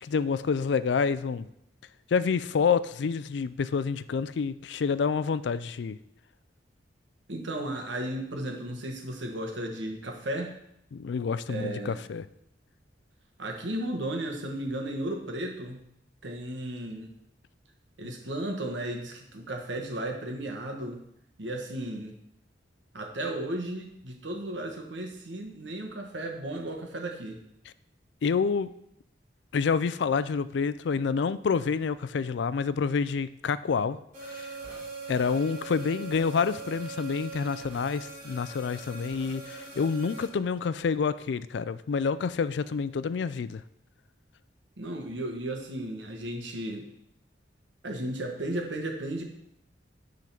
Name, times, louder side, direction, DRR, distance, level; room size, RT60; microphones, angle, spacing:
voice 1, 0.0-1.5 2.1-6.0 10.9-12.2 28.2-28.7 29.5-34.0 34.3-34.5 35.1-43.6, left 5 dB, 65° left, 15 dB, 0.4 m, -28 dB
voice 2, 7.3-10.5 11.5-12.0 13.4-15.8 16.2-17.1 18.0-21.0 21.4-22.1 22.9-27.4 44.8-46.9 47.8-49.2, right 1 dB, 75° right, 2 dB, 1.4 m, -34 dB
sound 1, 34.1-40.3, right 4 dB, 45° right, 2.7 m, -41 dB
9.1 x 3.9 x 5.8 m, 0.76 s
head